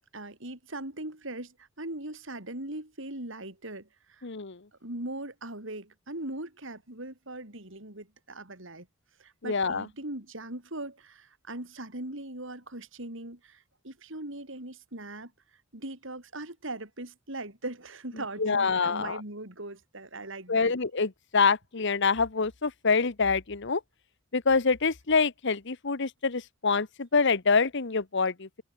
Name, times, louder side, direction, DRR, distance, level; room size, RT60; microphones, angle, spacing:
voice 1, 0.1-4.3 4.8-8.9 9.2-15.3 15.7-20.7, right 2 dB, 70° right, 5.5 m, -40 dB
voice 2, 4.2-4.6 9.4-9.9 18.4-19.2 20.5-23.8 24.3-28.5, left 4 dB, 60° left, 1.2 m, -26 dB
head